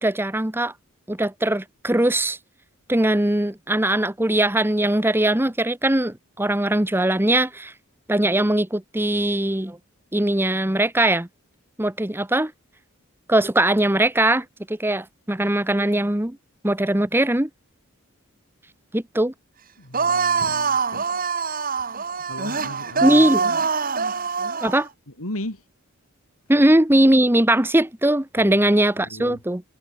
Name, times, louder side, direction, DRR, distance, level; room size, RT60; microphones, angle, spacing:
voice 1, 0.0-0.7 1.1-2.4 2.9-7.7 8.1-9.8 10.1-11.3 11.8-12.5 13.3-16.4 16.6-17.5 18.9-19.3 23.0-23.4 24.6-24.9 26.5-29.6, right 1 dB, 10° right, 1.0 m, -20 dB
voice 2, 19.8-21.1 22.3-23.6 25.2-25.6 28.3-28.6 29.0-29.4, left 1 dB, 85° left, 4.8 m, -36 dB
sound 1, 19.9-24.8, right 5 dB, 40° right, 2.4 m, -24 dB
head